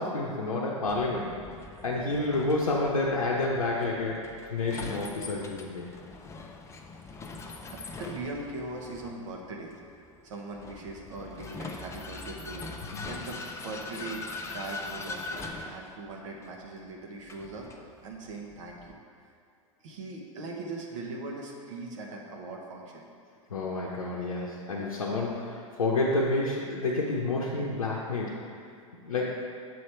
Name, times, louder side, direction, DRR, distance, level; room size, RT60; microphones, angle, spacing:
voice 1, 0.0-1.3 1.8-5.9 12.9-13.1 23.5-28.4 29.0-29.4, left 2 dB, 90° left, -5 dB, 0.7 m, -29 dB
Vehicle, 0.9-18.9, left 3 dB, 15° left, 0.5 m, -42 dB
voice 2, 7.7-9.8 10.2-17.7 18.0-19.0 19.8-23.1, right 2 dB, 65° right, 0 dB, 1.1 m, -40 dB
7.7 x 3.2 x 4.4 m, 2.4 s
hypercardioid pair, 95°, 17 cm